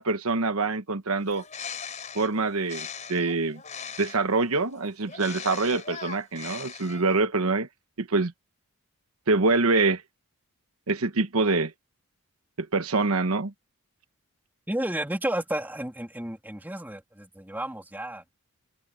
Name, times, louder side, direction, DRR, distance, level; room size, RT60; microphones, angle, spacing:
voice 1, 0.0-1.4 2.1-3.6 4.0-7.7 8.0-8.3 9.3-10.0 10.9-11.7 12.6-13.5, right 3 dB, 80° right, 1.2 m, -25 dB
Bird, 1.2-4.4 5.1-7.2, left 6 dB, 35° left, 4.6 m, -40 dB
voice 2, 14.7-18.2, right 1 dB, 10° right, 3.0 m, -32 dB
head